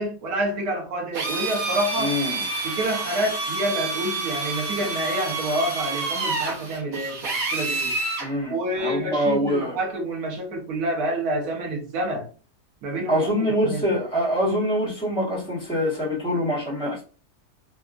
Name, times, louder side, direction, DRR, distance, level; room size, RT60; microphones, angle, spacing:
voice 1, 0.0-2.1 2.6-7.9 8.5-12.3 12.8-13.8, right 1 dB, 85° right, 1.4 m, -28 dB
Drill, 1.1-8.3, right 3 dB, 70° right, 1.4 m, -28 dB
voice 2, 2.0-2.4 8.2-9.8 13.1-17.0, equal, 5° left, 1.4 m, -24 dB
3.4 x 2.7 x 2.4 m
omnidirectional pair, 1.6 m